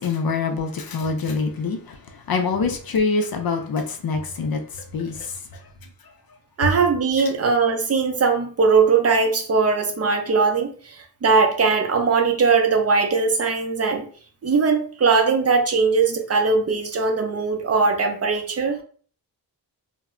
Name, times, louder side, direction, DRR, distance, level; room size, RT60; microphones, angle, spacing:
voice 1, 0.0-1.8 2.3-4.6 4.9-5.1, left 4 dB, 60° left, 0.5 m, -24 dB
voice 2, 6.6-14.1 14.4-18.8, right 4 dB, 35° right, 0.5 m, -20 dB
2.1 x 2.0 x 3.5 m
wide cardioid pair, 125°, 41 cm